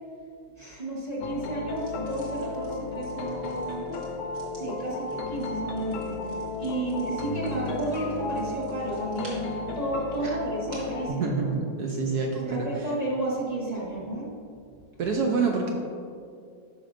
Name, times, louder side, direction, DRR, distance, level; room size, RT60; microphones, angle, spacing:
voice 1, 0.5-4.0 4.5-6.2 6.6-11.4 12.3-14.3, right 1 dB, 30° right, -5 dB, 0.8 m, -32 dB
sound 1, 1.2-11.1, left 3 dB, 75° left, 1.3 m, -34 dB
sound 2, 1.7-11.0, right 1 dB, 45° right, 2.0 m, -53 dB
voice 2, 11.1-12.7 15.0-15.7, right 4 dB, 75° right, 1 dB, 0.9 m, -27 dB
10.5 x 5.9 x 2.5 m, 2.3 s
omnidirectional pair, 2.4 m